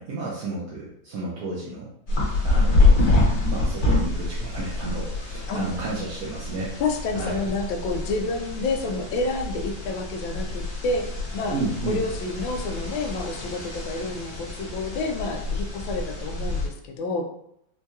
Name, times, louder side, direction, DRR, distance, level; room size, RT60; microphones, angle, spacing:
voice 1, 0.0-1.9 2.4-6.7 7.1-7.5 11.5-12.0, right 3 dB, 65° right, -5 dB, 0.9 m, -32 dB
sound 1, 2.1-16.7, left 2 dB, 50° left, 1.6 m, -26 dB
voice 2, 6.8-11.6 11.9-17.2, left 3 dB, 80° left, 5 dB, 1.3 m, -29 dB
4.5 x 2.7 x 2.3 m, 0.74 s
omnidirectional pair, 2.1 m